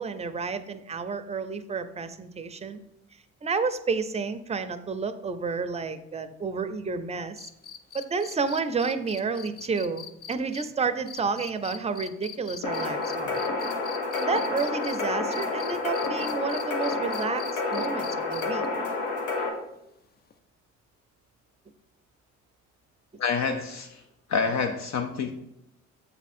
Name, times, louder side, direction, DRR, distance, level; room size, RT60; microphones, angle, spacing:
voice 1, 0.0-2.8 3.4-7.5 7.9-13.4 14.2-18.6, right 4 dB, 20° right, 10 dB, 0.5 m, -30 dB
sound 1, 7.4-15.0 15.3-18.7 20.3-20.4, left 8 dB, 30° left, 0.4 m, -42 dB
sound 2, 12.6-19.5, left 3 dB, 80° left, 1.3 m, -29 dB
voice 2, 23.2-24.0 24.3-25.3, left 5 dB, 65° left, 5 dB, 0.7 m, -27 dB
6.9 x 3.6 x 4.3 m, 0.81 s
cardioid pair, 90°, 30 cm